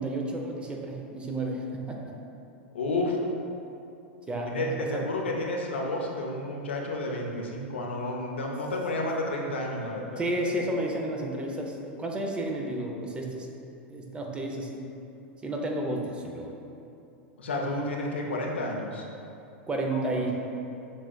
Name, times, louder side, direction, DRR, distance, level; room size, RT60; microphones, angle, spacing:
voice 1, 0.0-2.1 4.3-5.0 10.2-13.5 13.9-14.8 15.4-16.5 19.7-20.3, right 1 dB, 15° right, 0 dB, 0.5 m, -31 dB
voice 2, 2.7-3.2 4.5-10.2 17.4-19.1 19.9-20.2, left 2 dB, 90° left, 0 dB, 0.5 m, -31 dB
7.1 x 2.5 x 2.2 m, 2.7 s
hypercardioid pair, 105°, 6 cm